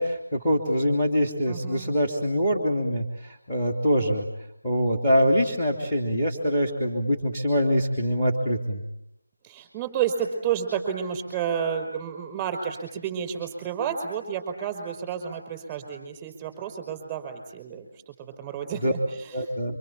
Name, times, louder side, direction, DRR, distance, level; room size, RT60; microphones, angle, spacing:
voice 1, 0.0-4.3 4.6-8.8 18.8-18.9 19.3-19.8, equal, 10° left, 3 dB, 3.1 m, -24 dB
voice 2, 1.5-2.0 9.4-19.4, right 8 dB, 10° right, 6 dB, 5.4 m, -31 dB
28.0 x 25.5 x 7.5 m, 0.83 s
figure-of-eight pair, 165°, 0 cm